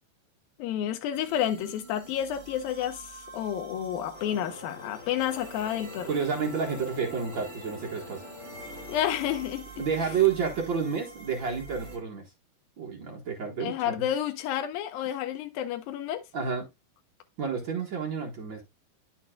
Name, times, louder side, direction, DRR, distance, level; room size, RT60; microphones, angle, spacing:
voice 1, 0.6-6.1 8.9-9.8 13.6-16.2, left 10 dB, 75° left, 2.6 m, -30 dB
sound 1, 1.1-12.0, right 5 dB, 45° right, 2.4 m, -47 dB
sound 2, 4.1-9.5, left 2 dB, 35° left, 1.1 m, -45 dB
voice 2, 6.1-8.2 9.8-12.2 12.8-14.1 16.3-16.7 17.4-18.6, right 6 dB, 70° right, 1.1 m, -30 dB
9.8 x 7.3 x 2.3 m
omnidirectional pair, 4.4 m